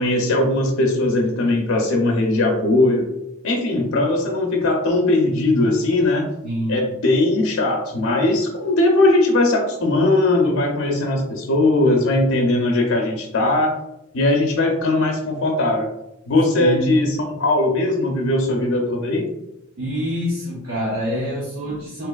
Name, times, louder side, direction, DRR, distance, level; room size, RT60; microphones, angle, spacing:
voice 1, 0.0-3.1 3.4-6.3 6.7-13.7 14.1-15.9 16.3-19.3, left 2 dB, 75° left, 1 dB, 0.6 m, -19 dB
voice 2, 6.4-6.8 16.6-17.0 19.8-22.1, equal, 75° right, -5 dB, 0.8 m, -26 dB
3.5 x 3.1 x 2.3 m, 0.86 s
head